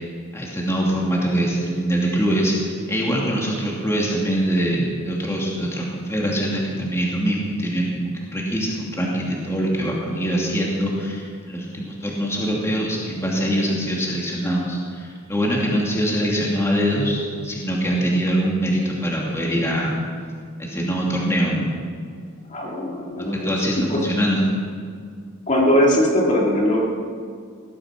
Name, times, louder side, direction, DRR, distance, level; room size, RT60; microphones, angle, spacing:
voice 1, 0.3-20.0 20.6-21.7 23.4-24.4, equal, 10° left, -4 dB, 2.6 m, -23 dB
voice 2, 22.5-24.0 25.5-26.8, equal, 35° left, -3 dB, 2.5 m, -20 dB
18.0 x 12.5 x 6.1 m, 2.1 s
head